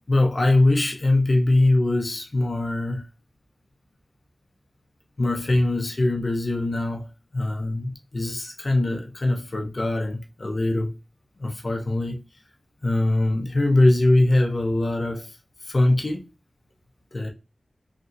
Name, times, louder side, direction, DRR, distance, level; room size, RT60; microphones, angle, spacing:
voice 1, 0.0-3.0 5.2-10.9 11.4-12.2 12.8-15.3 15.7-16.3 17.1-17.3, left 2 dB, 55° left, 0.9 m, -22 dB
3.4 x 2.7 x 2.6 m
cardioid pair, 50°, 0 cm